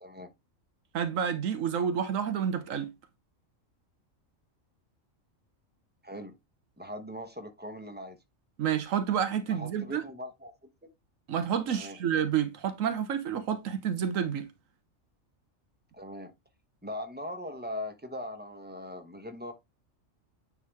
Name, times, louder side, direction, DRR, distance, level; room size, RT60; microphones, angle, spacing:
voice 1, 0.0-0.3 6.0-6.3 6.8-8.2 9.5-10.9 11.7-12.0 15.9-16.3 16.8-19.5, left 1 dB, 10° right, 1.0 m, -40 dB
voice 2, 0.9-2.9 8.6-10.0 11.3-14.5, right 8 dB, 85° right, 1.2 m, -29 dB
9.4 x 3.8 x 3.3 m
omnidirectional pair, 1.3 m